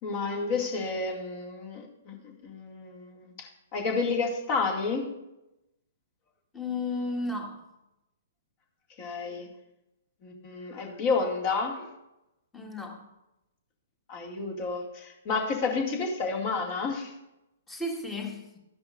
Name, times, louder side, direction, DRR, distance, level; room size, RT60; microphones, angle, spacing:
voice 1, 0.0-5.1 9.0-9.5 10.2-11.9 14.1-17.1, left 4 dB, 35° left, 1 dB, 2.3 m, -30 dB
voice 2, 6.5-7.6 12.5-13.0 17.7-18.5, left 2 dB, 10° left, 2 dB, 1.7 m, -33 dB
13.5 x 10.5 x 2.5 m, 0.92 s
figure-of-eight pair, 120°, 0 cm